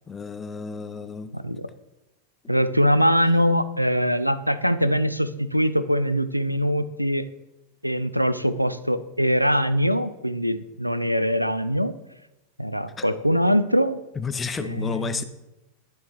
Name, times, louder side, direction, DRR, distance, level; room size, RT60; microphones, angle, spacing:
voice 1, 0.1-1.3 13.0-13.1 14.2-15.2, left 5 dB, 20° left, 0.5 m, -31 dB
voice 2, 1.3-1.7 2.5-7.3 7.8-12.0 12.6-14.0 14.6-15.2, equal, 90° right, 0.3 m, -22 dB
10.5 x 3.7 x 4.4 m
figure-of-eight pair, 90°, 0 cm